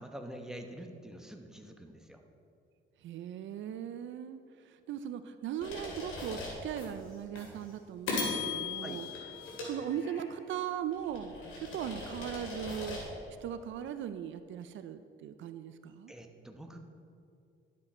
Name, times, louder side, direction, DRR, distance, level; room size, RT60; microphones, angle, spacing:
voice 1, 0.0-2.2 8.8-9.0 16.1-16.8, right 1 dB, 5° right, 3 dB, 1.0 m, -46 dB
voice 2, 3.0-9.1 9.6-13.0 13.4-16.1, right 9 dB, 70° right, 11 dB, 0.5 m, -39 dB
sound 1, 5.6-6.9 7.4-7.5 8.1-10.4 10.9-13.1, left 3 dB, 85° left, 2.6 m, -38 dB
11.5 x 7.4 x 4.3 m, 2.5 s
cardioid pair, 90°, 20 cm